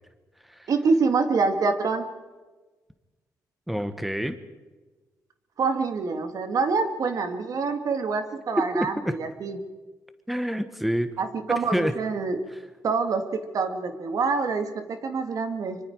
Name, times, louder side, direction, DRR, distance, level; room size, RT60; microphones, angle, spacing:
voice 1, 0.7-2.1 5.6-9.6 11.2-12.4 12.8-15.8, right 4 dB, 60° right, 6 dB, 2.3 m, -26 dB
voice 2, 3.7-4.4 8.6-9.1 10.3-11.1 11.7-11.9, equal, ahead, 9 dB, 1.4 m, -27 dB
25.5 x 24.5 x 4.8 m, 1.3 s
cardioid pair, 90°, 7 cm